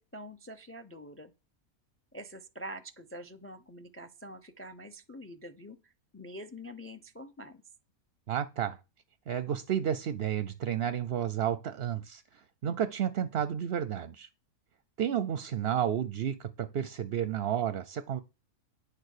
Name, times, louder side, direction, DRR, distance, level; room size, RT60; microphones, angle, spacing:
voice 1, 0.0-1.3 2.1-7.6, equal, 10° left, 0.7 m, -46 dB
voice 2, 8.3-8.8 9.3-14.3 15.0-18.2, right 9 dB, 55° right, 0.7 m, -31 dB
9.9 x 6.8 x 6.6 m
omnidirectional pair, 1.5 m